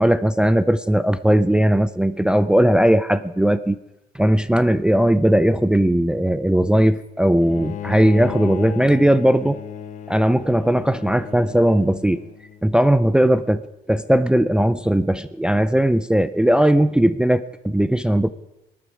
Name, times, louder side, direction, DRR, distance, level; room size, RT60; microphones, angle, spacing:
voice 1, 0.0-3.8 4.1-9.6 10.1-12.2 12.6-13.6 13.9-18.3, right 1 dB, 5° right, 13 dB, 0.4 m, -18 dB
Bowed string instrument, 7.4-12.6, left 10 dB, 50° left, 0.8 m, -35 dB
20.5 x 9.3 x 4.9 m, 0.92 s
cardioid pair, 110°, 17 cm